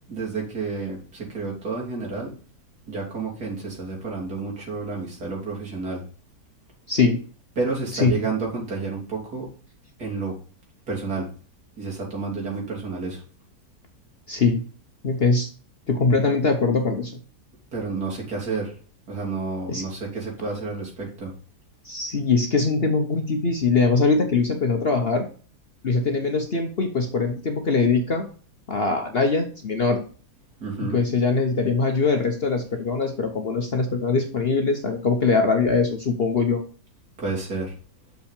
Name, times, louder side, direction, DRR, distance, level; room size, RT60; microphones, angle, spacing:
voice 1, 0.1-2.3 2.9-6.0 7.6-9.5 10.0-10.3 10.9-11.3 11.8-13.2 17.7-18.7 19.1-21.3 30.6-31.0 37.2-37.7, right 4 dB, 65° right, -3 dB, 3.6 m, -30 dB
voice 2, 6.9-7.2 7.9-8.1 14.3-14.6 15.0-15.5 15.9-17.1 19.7-19.8 21.8-25.3 25.8-28.3 28.7-30.0 30.8-36.6, left 4 dB, 45° left, 4 dB, 1.0 m, -22 dB
6.5 x 5.6 x 5.0 m, 0.41 s
omnidirectional pair, 1.8 m